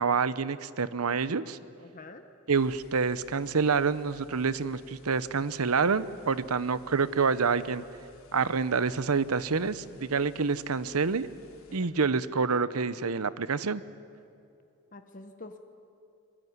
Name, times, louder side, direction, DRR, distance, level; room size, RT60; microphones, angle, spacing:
voice 1, 0.0-1.6 2.5-7.8 8.3-11.3 11.7-13.8, right 5 dB, 90° right, 16 dB, 0.8 m, -27 dB
voice 2, 1.8-2.2 10.0-10.3 11.7-11.9 14.9-15.6, left 2 dB, 35° left, 6 dB, 1.1 m, -47 dB
sound 1, 2.5-11.8, left 2 dB, 75° left, 2.9 m, -58 dB
24.5 x 22.0 x 9.6 m, 2.6 s
head